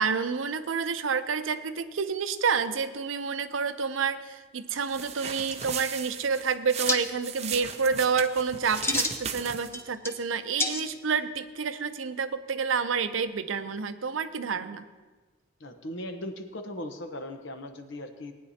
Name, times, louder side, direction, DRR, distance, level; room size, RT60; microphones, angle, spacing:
voice 1, 0.0-14.9, right 5 dB, 90° right, 11 dB, 0.6 m, -29 dB
sound 1, 4.8-9.8, right 7 dB, 35° right, 0.5 m, -37 dB
sound 2, 5.2-5.3 5.5-6.1 6.9-7.0 8.6-9.2 9.6-10.2 10.6-11.2, left 2 dB, 15° left, 0.6 m, -29 dB
voice 2, 15.6-18.3, left 1 dB, 70° left, 6 dB, 1.0 m, -38 dB
18.5 x 9.5 x 2.8 m, 1.3 s
head